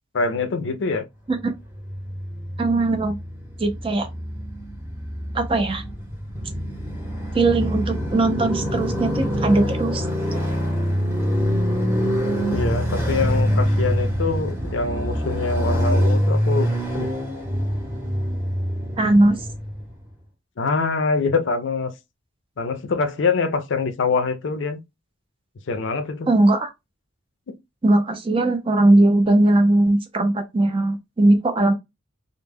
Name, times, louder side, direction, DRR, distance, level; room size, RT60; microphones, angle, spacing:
voice 1, 0.1-1.0 12.5-17.1 20.6-21.9 22.6-24.8 25.7-26.3 27.5-27.6, left 4 dB, 65° left, 0.4 m, -24 dB
Motorcycle, 1.7-19.9, equal, 10° right, 0.8 m, -25 dB
voice 2, 2.6-3.2 3.6-4.1 5.3-5.8 7.3-10.1 10.3-10.4 19.0-19.4 26.3-26.7 27.8-31.7, right 2 dB, 25° right, 0.4 m, -19 dB
2.1 x 2.0 x 3.3 m
head